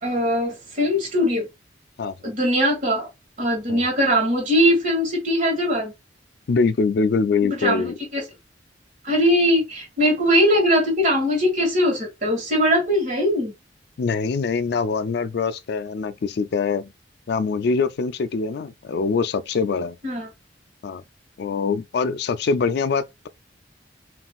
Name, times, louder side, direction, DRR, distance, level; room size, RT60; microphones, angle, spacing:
voice 1, 0.0-1.5 2.2-3.1 3.4-5.9 7.5-8.2 9.0-13.5 20.0-20.3, equal, 45° right, 2.2 m, -21 dB
voice 2, 6.5-7.9 14.0-16.9 17.3-20.0 20.8-21.0 21.4-23.3, left 4 dB, 65° left, 0.4 m, -23 dB
5.5 x 2.8 x 2.3 m
head